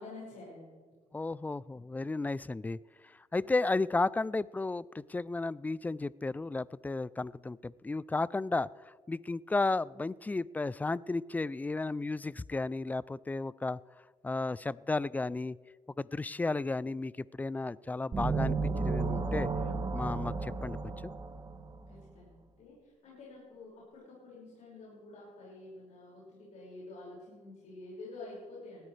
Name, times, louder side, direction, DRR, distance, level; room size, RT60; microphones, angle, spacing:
voice 1, 0.0-1.0 21.9-28.9, left 2 dB, 65° left, -6 dB, 5.6 m, -49 dB
voice 2, 1.1-2.8 3.3-8.7 9.1-13.8 14.2-15.6 16.0-19.5 19.9-20.8 21.0-21.1, left 3 dB, 10° left, 20 dB, 0.3 m, -33 dB
sound 1, 18.1-21.9, right 4 dB, 30° right, 1.2 m, -33 dB
19.5 x 14.0 x 3.3 m, 1.5 s
cardioid pair, 95°, 13 cm